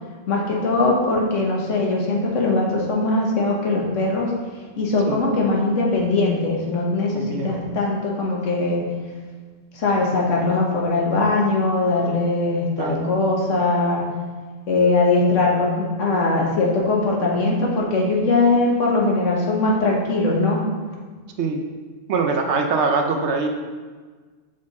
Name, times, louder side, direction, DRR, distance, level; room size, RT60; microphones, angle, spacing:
voice 1, 0.3-4.3 4.8-8.9 9.7-14.1 14.7-20.6, left 2 dB, 75° left, -2 dB, 1.5 m, -21 dB
voice 2, 7.1-7.6 12.8-13.1 21.4-21.7 22.1-23.5, right 4 dB, 65° right, 4 dB, 0.9 m, -23 dB
6.2 x 4.3 x 4.1 m, 1.4 s
omnidirectional pair, 1.3 m